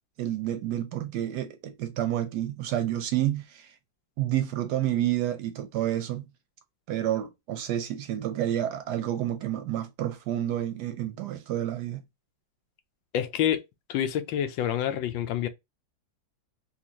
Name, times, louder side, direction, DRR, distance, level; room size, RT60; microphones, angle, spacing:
voice 1, 0.2-3.7 4.2-6.3 6.9-12.0, right 12 dB, 70° right, 1.0 m, -29 dB
voice 2, 13.1-13.6 13.9-15.5, left 10 dB, 80° left, 1.3 m, -27 dB
4.4 x 2.5 x 2.8 m
omnidirectional pair, 2.1 m